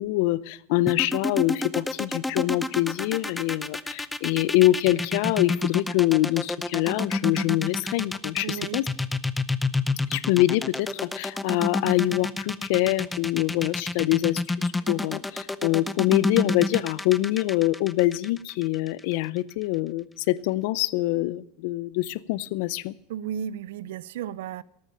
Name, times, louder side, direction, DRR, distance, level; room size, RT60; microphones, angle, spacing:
voice 1, 0.0-8.8 10.1-22.9, left 17 dB, 65° left, 0.6 m, -25 dB
sound 1, 0.9-19.0, left 2 dB, 10° left, 0.6 m, -29 dB
voice 2, 8.4-8.8 23.1-24.6, right 9 dB, 80° right, 0.5 m, -33 dB
13.5 x 8.8 x 8.5 m
supercardioid pair, 115°, 0 cm